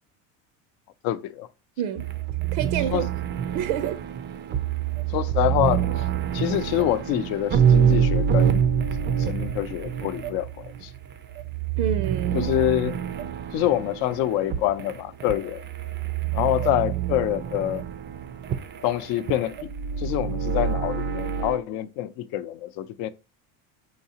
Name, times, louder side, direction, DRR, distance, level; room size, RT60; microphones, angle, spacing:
voice 1, 1.0-1.5 2.9-3.1 5.1-6.0 6.3-8.6 9.2-10.9 12.3-13.0 13.5-15.6 16.3-17.8 18.8-19.7 20.0-23.1, left 13 dB, 60° left, 0.6 m, -26 dB
voice 2, 1.8-2.1 2.5-3.1 3.5-4.0 11.8-12.5, right 9 dB, 70° right, 0.6 m, -28 dB
sound 1, 2.0-21.6, right 8 dB, 30° right, 0.4 m, -26 dB
4.8 x 3.9 x 2.8 m
supercardioid pair, 115°, 40 cm